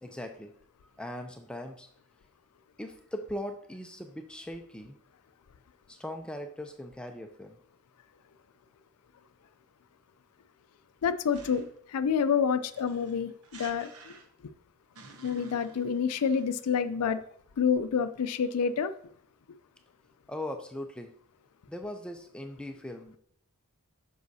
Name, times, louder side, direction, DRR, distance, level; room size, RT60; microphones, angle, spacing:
voice 1, 0.0-0.5 0.8-1.9 2.8-5.0 5.9-7.6 20.3-21.1 21.7-23.2, left 1 dB, 5° left, 5 dB, 0.4 m, -40 dB
voice 2, 11.0-14.2 15.2-17.2 17.6-18.9, left 6 dB, 80° left, 12 dB, 0.4 m, -28 dB
sound 1, 11.3-11.8 12.6-14.5 14.9-16.8, right 4 dB, 70° right, 1.1 m, -51 dB
9.5 x 6.2 x 2.7 m, 0.65 s
head